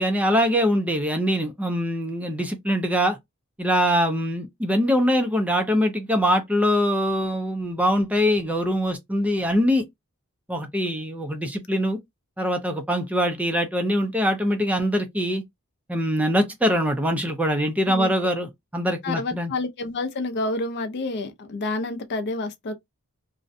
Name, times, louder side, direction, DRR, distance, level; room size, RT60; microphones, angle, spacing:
voice 1, 0.0-3.2 3.6-9.8 10.5-12.0 12.4-15.4 15.9-19.5, equal, 5° right, 0.4 m, -23 dB
voice 2, 19.0-22.7, left 2 dB, 50° left, 0.4 m, -29 dB
2.4 x 2.1 x 2.5 m
head